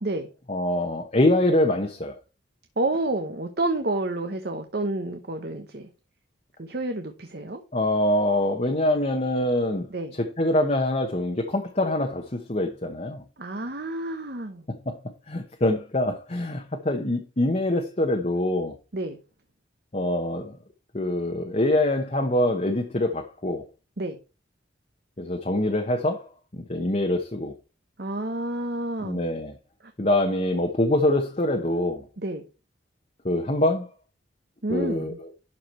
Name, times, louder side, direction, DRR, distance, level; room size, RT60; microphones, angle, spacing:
voice 1, 0.5-2.1 7.7-9.9 10.4-13.2 14.9-15.0 15.3-18.7 19.9-20.5 20.9-23.7 25.2-26.2 26.5-27.5 29.0-29.5 30.0-32.0 33.2-33.9 34.7-35.1, left 1 dB, 35° left, 1.0 m, -24 dB
voice 2, 2.8-5.9 6.6-7.6 9.9-10.1 13.4-14.6 18.9-19.2 24.0-24.2 28.0-29.3 32.2-32.5 34.6-35.2, right 2 dB, 55° right, 1.0 m, -29 dB
11.5 x 4.7 x 4.4 m
head